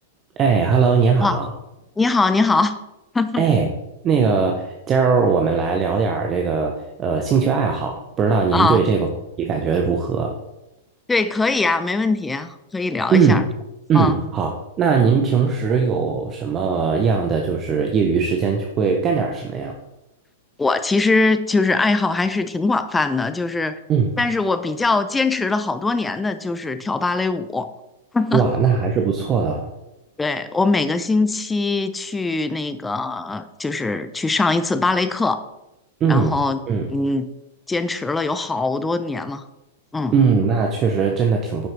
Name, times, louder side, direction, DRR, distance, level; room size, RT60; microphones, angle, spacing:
voice 1, 0.4-1.5 3.4-3.7 4.0-9.1 9.4-10.4 13.1-13.5 13.9-14.5 14.8-19.8 23.9-24.2 28.3-29.7 36.0-36.4 36.7-36.9 40.1-41.7, right 5 dB, 30° right, 3 dB, 1.1 m, -19 dB
voice 2, 2.0-2.7 3.1-3.5 8.5-8.9 11.1-13.4 13.9-14.2 20.6-23.8 24.2-27.7 28.1-28.5 30.2-35.4 36.1-36.6 36.9-37.3 37.7-39.4 39.9-40.1, left 3 dB, 10° left, 11 dB, 0.7 m, -21 dB
10.0 x 6.2 x 4.6 m, 0.92 s
figure-of-eight pair, 100°, 0 cm